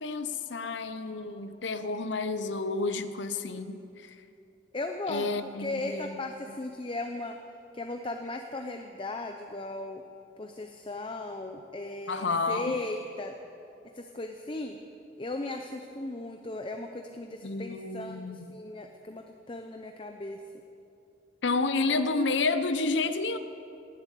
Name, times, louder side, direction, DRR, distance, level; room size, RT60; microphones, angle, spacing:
voice 1, 0.0-3.8 5.1-6.3 12.1-12.7 17.4-18.6 21.4-23.4, left 3 dB, 80° left, 11 dB, 0.8 m, -30 dB
voice 2, 4.7-5.3 5.6-7.4 7.7-10.0 10.4-13.3 14.0-14.8 15.2-20.4, left 2 dB, 30° left, 4 dB, 0.6 m, -37 dB
18.5 x 7.6 x 8.4 m, 2.7 s
head